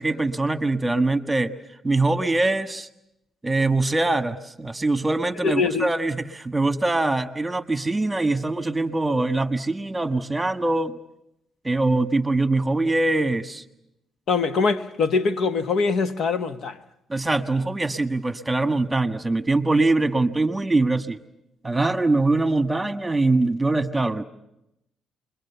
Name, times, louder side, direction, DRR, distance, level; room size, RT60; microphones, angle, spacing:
voice 1, 0.0-1.5 1.8-2.9 3.4-11.0 11.6-13.6 17.1-21.2 21.6-24.2, right 2 dB, 15° right, 1.5 m, -23 dB
voice 2, 5.4-5.9 14.3-16.8, left 4 dB, 65° left, 1.3 m, -23 dB
29.0 x 22.0 x 7.0 m
cardioid pair, 90°, 0 cm